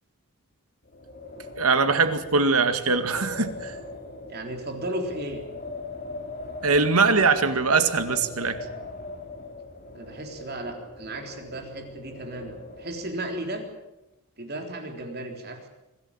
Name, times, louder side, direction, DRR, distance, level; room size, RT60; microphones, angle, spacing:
Wind, 0.8-13.5, left 2 dB, 40° left, 4.1 m, -41 dB
voice 1, 1.6-3.8 6.6-8.7, right 4 dB, 85° right, 9 dB, 2.1 m, -22 dB
voice 2, 4.3-5.4 9.9-13.7 14.4-15.7, right 1 dB, 45° right, 4 dB, 3.6 m, -35 dB
25.0 x 16.5 x 8.8 m, 0.97 s
head